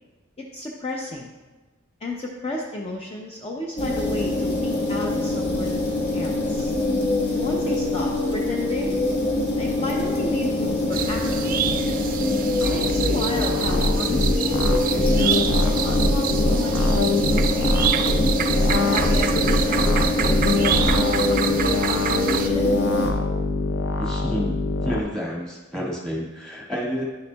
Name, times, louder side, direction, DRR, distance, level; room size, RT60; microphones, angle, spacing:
voice 1, 0.4-1.3 2.0-5.8 6.1-6.7 7.3-9.0 9.6-12.0 12.6-17.9 18.8-22.7, left 2 dB, 30° left, -1 dB, 0.6 m, -33 dB
sound 1, 3.8-23.1, left 2 dB, 55° left, 1.3 m, -24 dB
sound 2, 10.9-22.5, right 8 dB, 45° right, 0.4 m, -28 dB
sound 3, 12.6-25.0, left 2 dB, 85° left, 0.7 m, -24 dB
voice 2, 24.0-24.5 24.8-27.0, equal, 5° left, -4 dB, 1.7 m, -29 dB
10.5 x 6.6 x 2.3 m, 1.2 s
head